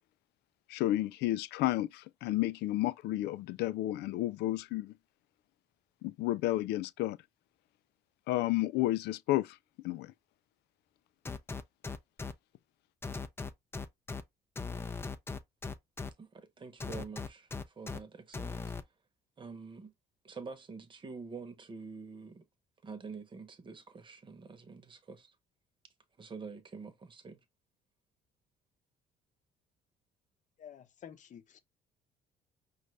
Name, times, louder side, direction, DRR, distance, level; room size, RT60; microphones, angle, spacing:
voice 1, 0.7-4.9 6.0-7.2 8.3-9.5 9.8-10.1, left 16 dB, 80° left, 0.4 m, -31 dB
sound 1, 11.2-12.3 13.0-14.2 14.6-16.1 16.8-18.0 18.3-18.8, left 4 dB, 15° left, 0.5 m, -38 dB
voice 2, 16.2-17.5 17.8-18.6 19.4-19.9 20.2-22.4 22.8-25.3 26.2-27.4, right 4 dB, 30° right, 1.0 m, -46 dB
voice 3, 30.6-31.6, left 9 dB, 45° left, 0.8 m, -50 dB
5.2 x 2.5 x 3.2 m
cardioid pair, 110°, 17 cm